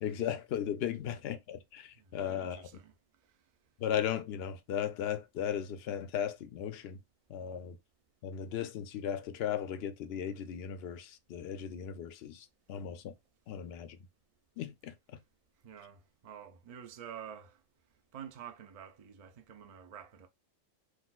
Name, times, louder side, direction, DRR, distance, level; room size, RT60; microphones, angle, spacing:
voice 1, 0.0-2.6 3.8-7.0 7.3-7.8 8.2-13.1 13.5-14.0 14.6-15.2, left 9 dB, 65° left, 0.7 m, -36 dB
voice 2, 2.0-2.9 15.6-17.6 18.1-20.3, right 8 dB, 50° right, 0.4 m, -49 dB
3.9 x 2.5 x 2.3 m
omnidirectional pair, 1.3 m